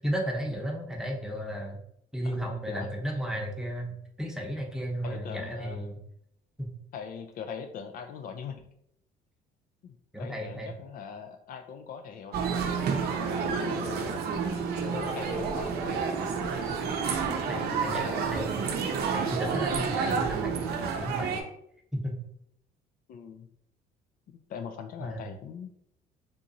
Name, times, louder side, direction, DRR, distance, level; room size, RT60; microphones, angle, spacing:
voice 1, 0.0-1.8 2.1-6.0 6.6-6.7 10.1-10.7 17.3-18.6 19.1-21.4 21.9-22.2 25.0-25.3, equal, 5° right, 0 dB, 0.8 m, -34 dB
voice 2, 2.2-3.2 5.0-5.8 6.9-8.6 9.8-14.2 14.8-15.8 17.5-18.4 23.1-23.5 24.5-25.7, left 6 dB, 55° left, 6 dB, 0.4 m, -41 dB
sound 1, 12.3-21.4, right 5 dB, 70° right, 0.6 m, -29 dB
3.6 x 2.9 x 2.6 m, 0.73 s
cardioid pair, 110°, 17 cm